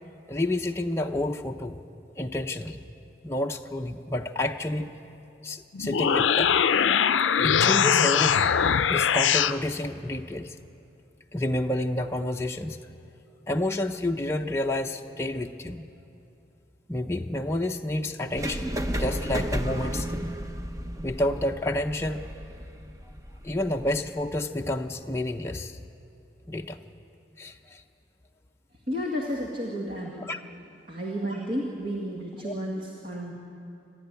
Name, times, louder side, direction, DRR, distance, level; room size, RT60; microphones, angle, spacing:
voice 1, 0.3-1.8 2.2-2.8 3.2-4.9 5.4-6.6 7.4-8.5 8.9-10.6 11.3-12.9 13.5-15.9 16.9-20.3 21.0-22.3 23.4-25.8 26.5-26.8 27.4-27.8 30.3-30.4 32.4-32.5, left 1 dB, 15° left, 2 dB, 0.6 m, -29 dB
sound 1, 5.7-9.6, left 7 dB, 90° left, 0.5 m, -22 dB
sound 2, 18.4-24.3, equal, 15° right, 0.9 m, -33 dB
voice 2, 28.9-30.3 30.9-33.3, equal, 50° right, -1 dB, 2.0 m, -32 dB
26.5 x 12.5 x 9.7 m, 2.6 s
head